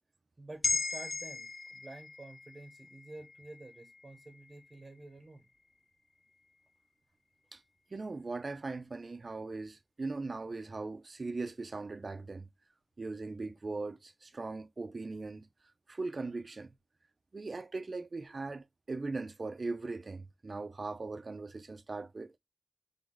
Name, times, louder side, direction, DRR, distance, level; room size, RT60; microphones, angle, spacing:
voice 1, 0.4-5.5, right 2 dB, 45° right, 1.1 m, -50 dB
sound 1, 0.6-5.1 5.5-5.7, left 3 dB, 50° left, 0.8 m, -38 dB
voice 2, 7.9-12.5 13.0-15.5 15.9-16.7 17.3-22.4, right 3 dB, 65° right, 0.5 m, -39 dB
3.9 x 3.5 x 3.7 m
wide cardioid pair, 75°, 0 cm